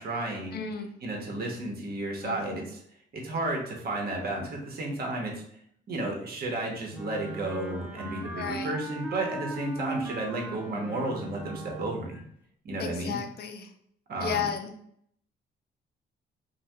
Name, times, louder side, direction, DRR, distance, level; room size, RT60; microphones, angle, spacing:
voice 1, 0.0-0.6 1.0-2.8 3.1-5.4 5.9-12.1 12.6-13.2 14.1-14.4, right 2 dB, 50° right, 0 dB, 0.9 m, -32 dB
voice 2, 0.5-0.9 2.2-2.6 8.3-8.7 12.8-13.7 14.2-14.7, left 7 dB, 55° left, 6 dB, 0.5 m, -33 dB
Wind instrument woodwind instrument, 6.9-12.3, right 2 dB, 5° right, 0.5 m, -39 dB
2.6 x 2.2 x 3.3 m, 0.68 s
cardioid pair, 90°, 20 cm